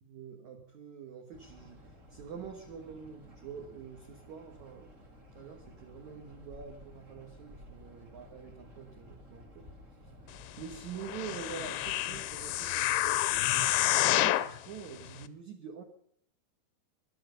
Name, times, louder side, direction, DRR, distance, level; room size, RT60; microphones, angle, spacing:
voice 1, 0.0-1.8 2.1-5.0 5.3-9.7 10.6-15.8, right 7 dB, 60° right, 3 dB, 2.0 m, -46 dB
sound 1, 1.3-13.8, left 1 dB, 35° right, 1.1 m, -54 dB
sound 2, 11.0-14.6 15.2-15.3, left 15 dB, 80° left, 2.4 m, -28 dB
20.0 x 11.5 x 5.2 m, 0.70 s
omnidirectional pair, 5.4 m